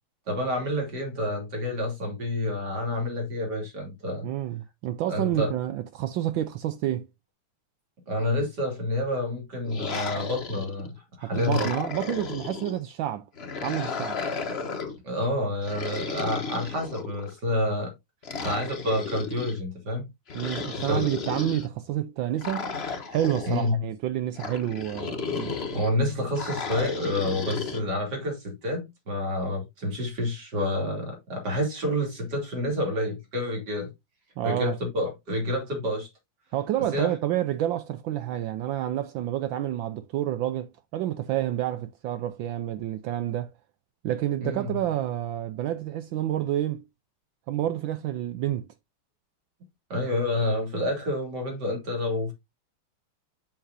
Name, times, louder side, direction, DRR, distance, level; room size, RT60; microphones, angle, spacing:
voice 1, 0.3-4.3 5.1-5.5 8.1-11.7 15.0-17.9 18.4-20.1 20.8-21.0 23.5-23.8 25.7-33.9 34.4-36.1 36.9-37.1 44.4-44.7 49.9-52.3, left 1 dB, 50° right, 3.4 m, -28 dB
voice 2, 4.2-7.1 11.2-13.3 13.6-14.2 20.3-22.8 23.1-25.6 34.4-34.8 36.5-43.5 44.0-46.8 47.5-48.7, right 12 dB, 75° right, 1.2 m, -29 dB
sound 1, 9.6-10.9 11.3-12.8 13.4-15.0 15.6-17.3 18.2-19.6 20.3-21.7 22.4-23.7 24.4-25.9 26.3-27.8, left 5 dB, 40° left, 1.0 m, -34 dB
7.4 x 7.1 x 2.6 m
omnidirectional pair, 2.3 m